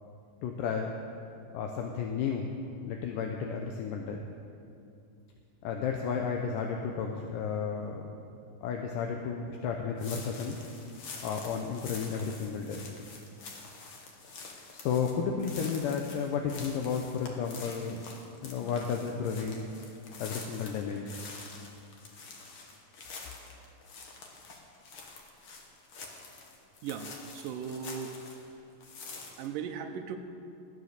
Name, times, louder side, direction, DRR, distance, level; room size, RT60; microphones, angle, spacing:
voice 1, 0.4-0.9 1.5-2.5 2.8-4.2 5.6-8.1 8.6-10.6 11.2-12.8 14.7-18.1 18.4-19.7 20.2-21.2, left 6 dB, 80° left, 2 dB, 2.4 m, -33 dB
sound 1, 10.0-28.5 28.8-29.5, left 4 dB, 55° left, 1.8 m, -47 dB
voice 2, 26.8-28.1 29.4-30.2, right 7 dB, 80° right, 5 dB, 2.4 m, -37 dB
15.0 x 9.6 x 6.5 m, 2.6 s
omnidirectional pair, 3.9 m